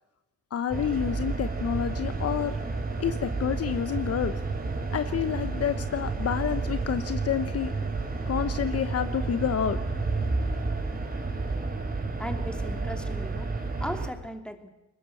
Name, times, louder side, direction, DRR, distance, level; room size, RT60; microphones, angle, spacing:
voice 1, 0.5-2.6 3.0-4.3 4.9-7.7 8.3-9.8, left 8 dB, 55° left, 11 dB, 1.1 m, -29 dB
sound 1, 0.7-14.1, right 3 dB, 30° right, 4.0 m, -31 dB
voice 2, 12.2-14.7, equal, 5° left, 6 dB, 2.7 m, -38 dB
21.5 x 20.5 x 7.8 m, 0.99 s
cardioid pair, 90°, 30 cm